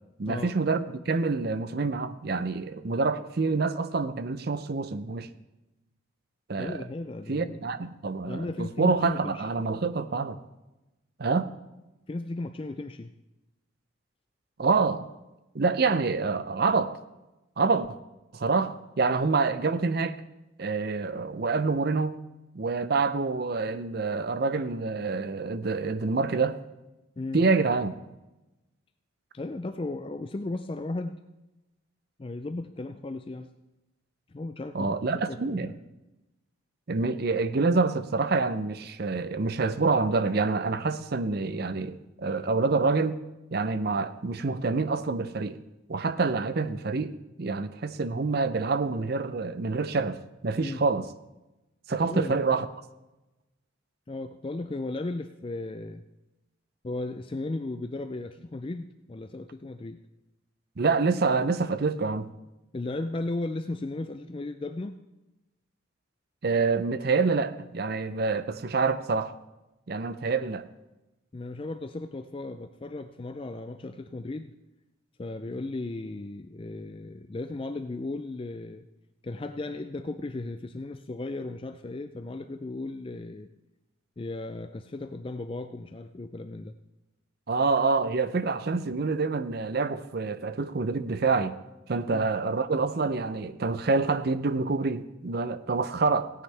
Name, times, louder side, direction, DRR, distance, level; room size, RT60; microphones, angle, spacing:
voice 1, 0.2-5.3 6.5-6.9 7.3-10.4 11.2-11.5 14.6-15.1 15.5-17.0 17.6-17.9 18.3-20.2 20.6-22.2 22.5-26.6 27.3-28.0 34.7-35.7 36.9-43.2 43.5-45.6 45.9-51.1 51.9-52.7 60.8-62.3 66.4-69.3 69.9-70.7 87.5-91.6 91.9-96.4, right 4 dB, 50° right, 13 dB, 0.5 m, -27 dB
voice 2, 6.6-7.7 8.3-9.5 12.1-13.1 27.2-27.4 29.3-31.2 32.2-33.5 34.3-35.0 35.3-35.8 50.6-50.8 52.0-52.4 54.1-56.0 56.8-60.0 62.7-65.0 71.3-74.5 75.2-78.9 79.2-83.5 84.2-86.7 92.1-92.3, left 2 dB, 25° left, 8 dB, 0.4 m, -35 dB
17.5 x 9.7 x 3.3 m, 1.0 s
head